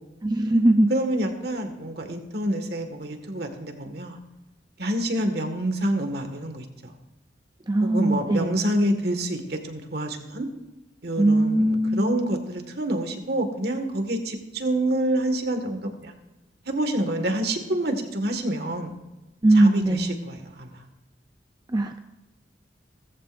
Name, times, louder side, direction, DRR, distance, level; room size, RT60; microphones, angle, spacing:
voice 1, 0.2-0.9 7.7-8.6 11.2-12.2 19.4-20.1 21.7-22.0, right 1 dB, 25° right, 5 dB, 0.7 m, -20 dB
voice 2, 0.9-4.2 4.8-6.9 7.8-10.5 11.0-16.2 16.7-19.0 19.5-20.8, right 1 dB, 60° right, 5 dB, 1.9 m, -27 dB
19.0 x 14.5 x 2.6 m, 1.0 s
head